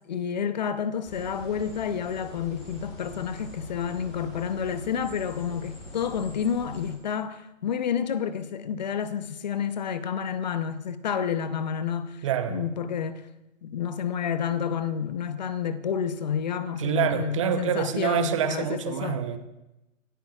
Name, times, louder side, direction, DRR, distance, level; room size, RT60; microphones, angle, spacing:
voice 1, 0.1-13.2 13.6-19.2, left 7 dB, 35° left, 0.8 m, -30 dB
sound 1, 1.0-6.9, left 1 dB, 15° left, 3.1 m, -44 dB
voice 2, 12.2-12.6 16.8-19.4, right 10 dB, 25° right, 0.8 m, -27 dB
28.0 x 13.5 x 2.4 m
figure-of-eight pair, 140°, 40 cm